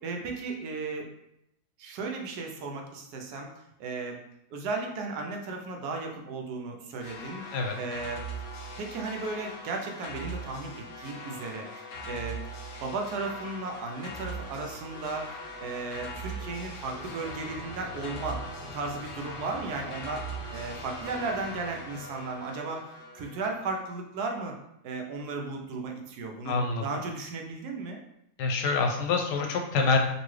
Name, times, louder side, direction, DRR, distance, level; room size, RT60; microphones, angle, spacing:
voice 1, 0.0-1.1 1.8-3.5 3.8-4.2 4.5-7.4 7.8-8.2 8.8-12.4 12.8-18.4 18.7-20.2 20.5-22.8 23.1-24.5 24.8-28.0, right 3 dB, 75° right, 2 dB, 1.2 m, -35 dB
sound 1, 7.0-23.8, right 1 dB, 65° left, 1.1 m, -41 dB
sound 2, 12.9-22.4, equal, 30° left, 1.3 m, -47 dB
voice 2, 26.5-26.8 28.4-30.0, left 4 dB, 90° left, 3 dB, 1.3 m, -26 dB
4.0 x 2.6 x 3.1 m, 0.81 s
omnidirectional pair, 1.8 m